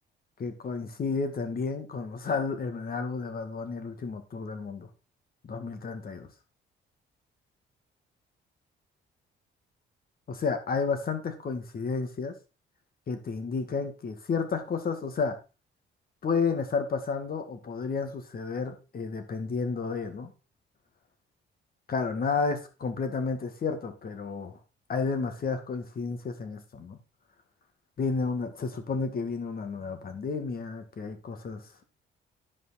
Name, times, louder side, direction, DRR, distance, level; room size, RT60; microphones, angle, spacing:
voice 1, 0.4-4.9 5.4-6.3 10.3-12.4 13.1-15.4 16.2-20.3 21.9-24.6 24.9-27.0 28.0-31.8, left 4 dB, 50° left, 7 dB, 2.2 m, -31 dB
11.0 x 5.3 x 4.3 m, 0.31 s
cardioid pair, 90°, 20 cm